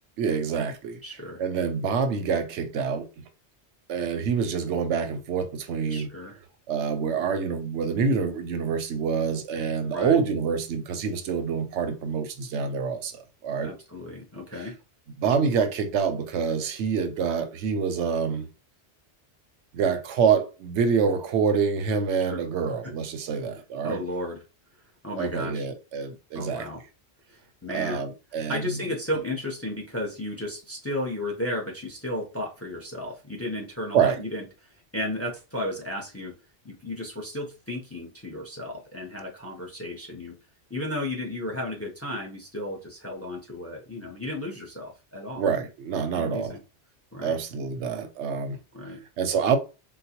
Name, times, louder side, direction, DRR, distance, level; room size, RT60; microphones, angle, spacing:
voice 1, 0.2-1.0 1.4-3.1 3.9-6.1 6.7-13.7 15.2-18.5 19.7-24.0 25.2-26.7 27.7-28.7 33.9-34.2 45.4-46.5 47.2-48.6 49.2-49.6, right 6 dB, 85° right, 0.9 m, -26 dB
voice 2, 1.0-1.4 5.9-6.4 9.9-10.2 13.6-14.8 22.3-22.4 22.8-22.9 23.8-24.4 25.0-25.7 26.3-26.8 27.3-28.0 28.5-36.3 36.6-40.4 40.7-45.4 46.1-46.6 47.1-47.4 48.7-49.0, left 1 dB, 15° left, 0.5 m, -34 dB
3.9 x 2.2 x 2.8 m
omnidirectional pair, 1.2 m